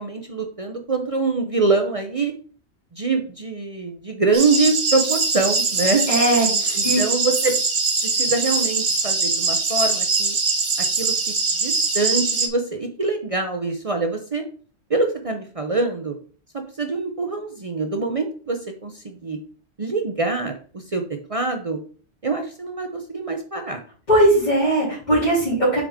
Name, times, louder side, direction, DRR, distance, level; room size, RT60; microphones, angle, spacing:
voice 1, 0.0-2.3 2.9-6.1 6.7-7.6 8.0-10.4 11.0-11.1 11.6-14.5 14.9-16.1 16.5-19.4 19.8-21.8 22.2-23.8, right 3 dB, 35° right, 5 dB, 0.7 m, -24 dB
sound 1, 4.3-12.5, right 4 dB, 60° right, 1.2 m, -22 dB
voice 2, 6.1-7.0 24.1-25.8, right 1 dB, 40° left, -9 dB, 3.2 m, -19 dB
7.2 x 4.8 x 3.5 m, 0.43 s
omnidirectional pair, 1.1 m